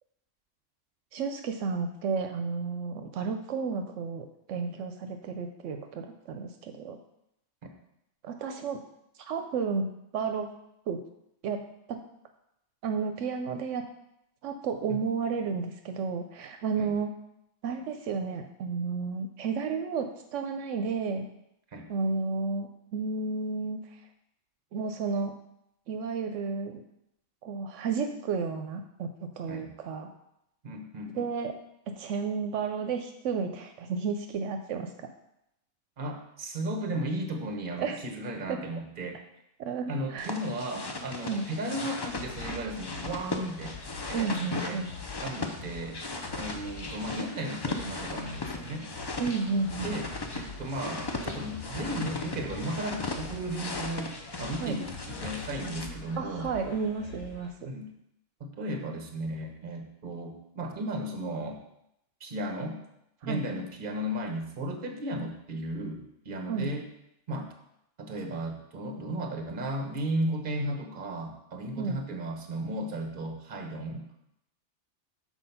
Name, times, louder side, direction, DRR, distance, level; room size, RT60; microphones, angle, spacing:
voice 1, 1.1-7.0 8.2-8.8 9.3-9.9 10.1-10.5 10.9-11.0 11.4-12.0 12.8-13.8 14.4-17.1 17.6-21.3 21.9-23.8 24.7-25.4 25.9-26.8 27.4-30.1 31.1-31.6 32.0-35.1 37.8-38.0 38.5-38.6 39.6-40.3 41.2-41.5 44.1-44.9 49.2-50.0 54.6-54.8 56.1-57.7 63.2-63.4 66.5-66.7 71.8-72.0, right 5 dB, 80° right, 6 dB, 0.9 m, -32 dB
voice 2, 30.6-31.3 36.0-39.2 39.9-43.8 44.1-44.8 45.2-46.0 46.3-48.9 49.8-50.1 50.3-54.1 54.4-56.5 57.6-57.9 58.4-61.6 62.2-62.8 63.2-66.8 67.3-67.5 68.0-74.1, right 1 dB, 45° right, 4 dB, 1.1 m, -35 dB
sound 1, 40.2-55.9, left 3 dB, 35° left, 0.4 m, -37 dB
sound 2, 42.1-57.5, left 5 dB, 70° left, 1.1 m, -46 dB
6.3 x 4.4 x 5.6 m, 0.81 s
omnidirectional pair, 1.3 m